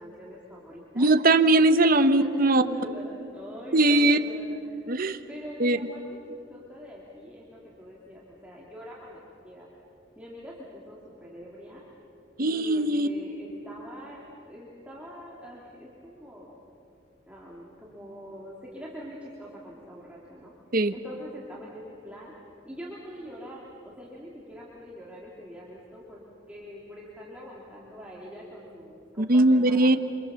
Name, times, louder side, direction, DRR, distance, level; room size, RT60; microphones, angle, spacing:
voice 1, 0.0-1.1 2.1-9.7 10.2-11.8 12.4-16.6 17.3-20.5 20.9-22.3 22.6-26.2 26.5-30.0, equal, 5° right, -5 dB, 2.9 m, -44 dB
voice 2, 0.9-2.6 3.7-4.2 4.9-5.2 5.6-5.8 12.4-13.1 20.7-20.9 29.2-30.0, right 2 dB, 50° right, 10 dB, 1.0 m, -20 dB
27.5 x 26.0 x 7.1 m, 2.6 s
head